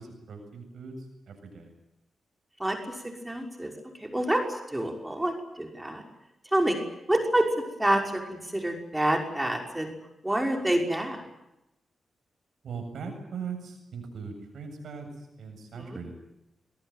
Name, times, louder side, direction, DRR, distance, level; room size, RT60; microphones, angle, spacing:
voice 1, 0.0-1.7 12.6-16.1, right 5 dB, 80° right, 5 dB, 7.7 m, -40 dB
voice 2, 3.2-3.7 4.0-4.4 4.7-6.0 6.5-6.8 7.1-7.4 7.8-9.9 10.2-11.2 15.7-16.0, right 1 dB, 10° right, 3 dB, 5.8 m, -27 dB
25.0 x 18.5 x 9.4 m, 0.89 s
cardioid pair, 65°, 0 cm